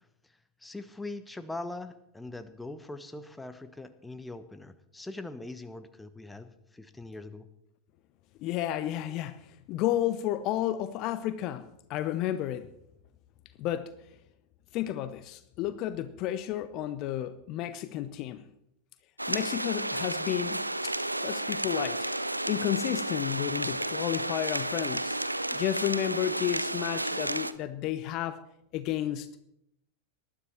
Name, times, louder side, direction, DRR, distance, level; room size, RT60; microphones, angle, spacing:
voice 1, 0.6-7.5, left 2 dB, 5° left, 1.2 m, -42 dB
voice 2, 8.4-12.7 13.6-13.9 14.7-18.5 19.3-20.9 21.2-22.1 22.5-25.2 25.5-28.4 28.7-29.3, left 12 dB, 40° left, 0.8 m, -32 dB
sound 1, 19.2-27.5, right 1 dB, 85° right, 0.7 m, -32 dB
19.5 x 12.5 x 4.3 m
figure-of-eight pair, 90°, 0 cm